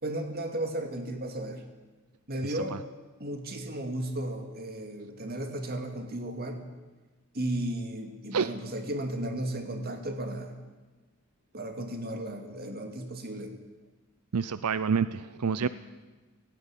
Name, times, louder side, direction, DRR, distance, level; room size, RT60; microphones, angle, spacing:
voice 1, 0.0-1.6 2.3-2.8 3.2-6.6 7.3-10.5 11.5-13.5 15.6-15.7, right 1 dB, 45° right, 5 dB, 2.4 m, -34 dB
voice 2, 2.4-2.8 8.3-8.5 14.3-15.7, right 6 dB, 85° right, 14 dB, 0.6 m, -28 dB
16.5 x 16.5 x 9.9 m, 1.2 s
head